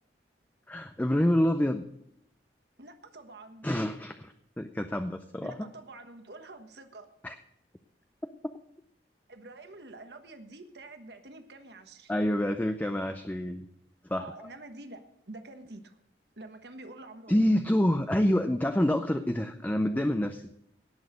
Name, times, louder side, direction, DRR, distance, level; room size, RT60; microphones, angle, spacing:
voice 1, 0.7-1.8 3.6-5.7 7.2-7.4 12.1-13.7 14.1-14.5 17.3-20.5, left 1 dB, 10° left, 7 dB, 0.5 m, -27 dB
voice 2, 2.8-3.7 5.4-7.1 9.3-12.1 14.1-16.0 16.4-17.4, right 2 dB, 65° right, 7 dB, 1.3 m, -47 dB
17.5 x 6.3 x 6.3 m, 0.75 s
head